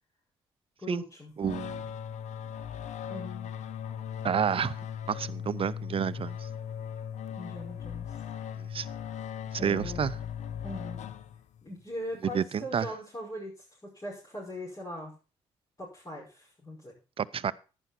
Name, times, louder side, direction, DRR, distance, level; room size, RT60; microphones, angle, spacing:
voice 1, 0.8-1.3 3.0-3.5 7.4-8.1 9.6-10.1 10.6-11.0 11.6-13.5 13.8-15.2 15.8-16.9, left 1 dB, 30° left, 5.6 m, -40 dB
sound 1, 1.4-11.7, left 9 dB, 65° left, 0.7 m, -38 dB
voice 2, 1.4-1.8 4.2-4.7 5.1-6.5 8.6-8.9 9.6-10.1 12.3-12.9 17.2-17.5, right 7 dB, 45° right, 0.7 m, -30 dB
11.0 x 9.7 x 4.1 m
hypercardioid pair, 50°, 13 cm